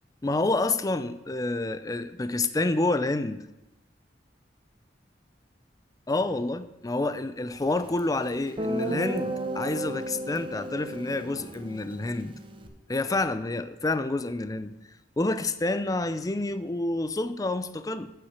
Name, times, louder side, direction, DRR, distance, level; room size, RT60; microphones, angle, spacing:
voice 1, 0.2-3.5 6.1-12.4 12.9-14.7 15.2-18.1, left 2 dB, 20° left, 12 dB, 0.5 m, -28 dB
Guitar, 8.0-8.1 8.6-12.7, right 1 dB, 30° right, 0.9 m, -33 dB
8.1 x 5.9 x 8.0 m, 0.94 s
head